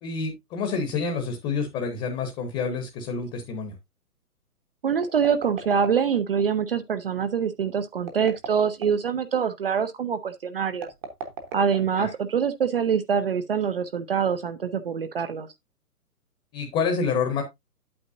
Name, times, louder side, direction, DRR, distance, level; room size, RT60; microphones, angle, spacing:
voice 1, 0.0-3.7 12.0-12.1 16.5-17.4, left 5 dB, 15° left, 1.0 m, -28 dB
voice 2, 4.8-10.9 11.5-15.5, right 7 dB, 40° right, 0.7 m, -25 dB
sound 1, 5.0-6.4 8.0-9.1 10.7-12.3, right 5 dB, 15° right, 0.9 m, -37 dB
8.7 x 8.2 x 2.5 m
figure-of-eight pair, 135°, 46 cm